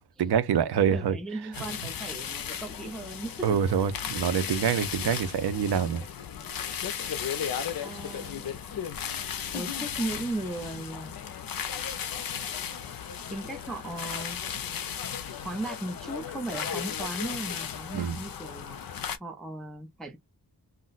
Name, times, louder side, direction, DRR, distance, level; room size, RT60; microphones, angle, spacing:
voice 1, 0.0-1.2 3.4-6.0 17.9-18.2, right 8 dB, 90° right, 0.5 m, -26 dB
voice 2, 0.9-3.9 6.3-6.6 7.8-8.8 9.5-11.5 13.3-14.4 15.3-18.8 19.2-20.2, right 2 dB, ahead, 0.4 m, -37 dB
sound 1, 1.5-19.2, left 8 dB, 65° left, 0.5 m, -35 dB
2.5 x 2.1 x 3.8 m
wide cardioid pair, 165°, 38 cm